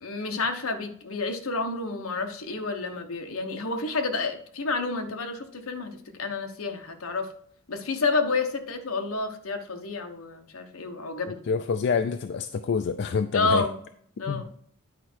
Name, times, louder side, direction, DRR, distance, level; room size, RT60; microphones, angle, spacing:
voice 1, 0.0-7.3 7.7-11.4 13.3-13.8 14.2-14.5, left 3 dB, 70° left, 6 dB, 1.0 m, -29 dB
voice 2, 11.5-13.7 14.3-14.4, left 5 dB, 50° left, 9 dB, 0.4 m, -27 dB
9.9 x 4.6 x 4.4 m, 0.64 s
head